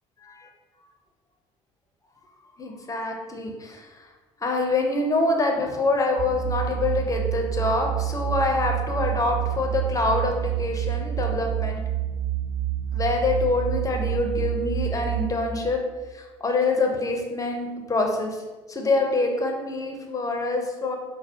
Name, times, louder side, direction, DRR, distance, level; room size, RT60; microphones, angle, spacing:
voice 1, 2.6-4.1 4.4-11.8 12.9-15.8 16.1-18.4 18.7-21.0, left 2 dB, 20° left, 2 dB, 0.7 m, -25 dB
sound 1, 6.2-15.3, right 11 dB, 40° right, 0.4 m, -28 dB
4.5 x 2.1 x 2.8 m, 1.3 s
hypercardioid pair, 60°, 16 cm